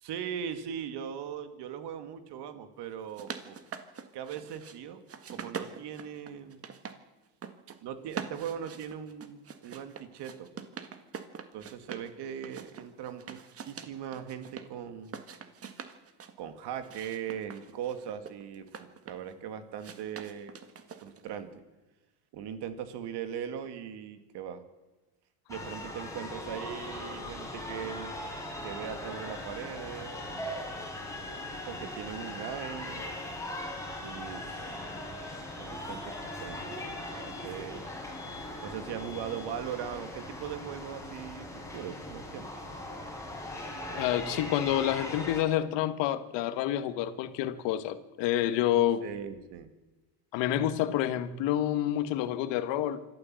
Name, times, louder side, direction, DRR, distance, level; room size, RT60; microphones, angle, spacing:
voice 1, 0.0-3.6 4.1-5.0 5.3-6.7 7.8-10.5 11.5-15.2 16.4-20.6 21.0-21.5 22.3-24.6 25.5-28.2 28.6-30.1 31.7-33.1 34.0-35.2 35.6-36.1 36.4-37.9 38.6-42.5 49.0-49.7 50.5-50.7, right 8 dB, 65° right, 9 dB, 2.5 m, -40 dB
sound 1, 2.9-4.8 5.1-7.0 7.3-7.8 8.1-12.1 12.4-14.7 15.0-16.3 16.8-19.3 19.8-21.3, right 6 dB, 30° right, 1.7 m, -44 dB
sound 2, 25.5-45.4, left 1 dB, 5° left, 5.3 m, -39 dB
voice 2, 43.9-49.0 50.3-53.0, left 12 dB, 75° left, 11 dB, 1.7 m, -28 dB
25.5 x 13.5 x 7.7 m, 1.1 s
cardioid pair, 120°, 43 cm